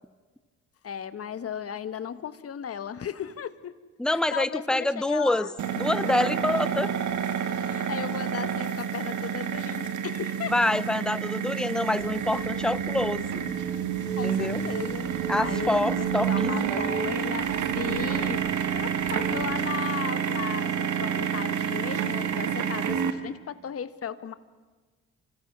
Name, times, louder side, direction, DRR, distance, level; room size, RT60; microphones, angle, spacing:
voice 1, 0.8-3.7 4.1-5.5 7.6-10.5 14.1-17.5 17.7-18.4 18.7-24.3, left 8 dB, 50° left, 12 dB, 1.4 m, -36 dB
voice 2, 4.0-5.5 5.7-6.9 10.5-13.3 14.2-14.7 15.3-16.8, left 1 dB, ahead, 15 dB, 0.8 m, -26 dB
sound 1, 5.6-23.1, right 8 dB, 75° right, 1.9 m, -29 dB
sound 2, 12.0-19.6, right 2 dB, 35° right, 5.9 m, -48 dB
27.5 x 27.0 x 6.2 m, 1.4 s
cardioid pair, 90°, 30 cm